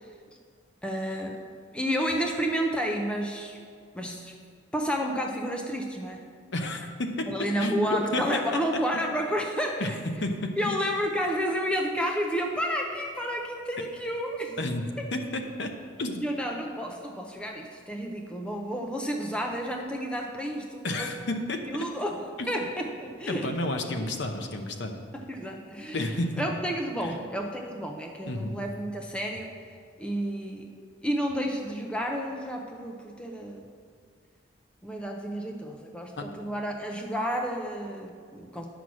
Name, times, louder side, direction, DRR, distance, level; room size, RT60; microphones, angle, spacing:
voice 1, 0.8-1.4 1.7-3.6 3.9-4.3 4.7-6.2 7.3-10.0 10.6-14.6 16.2-21.3 21.6-22.2 22.5-23.5 25.1-26.0 26.4-29.5 30.0-30.7 31.0-33.6 34.8-38.7, equal, 5° left, 1 dB, 0.5 m, -31 dB
voice 2, 6.5-7.3 7.6-8.4 8.9-9.1 9.8-9.9 10.2-10.7 14.6-15.7 16.0-16.2 20.8-21.9 22.4-22.5 23.3-24.9 25.9-26.4 27.0-27.2 28.3-28.6 36.2-36.3, left 1 dB, 60° left, 5 dB, 0.8 m, -31 dB
9.9 x 6.0 x 6.2 m, 2.1 s
head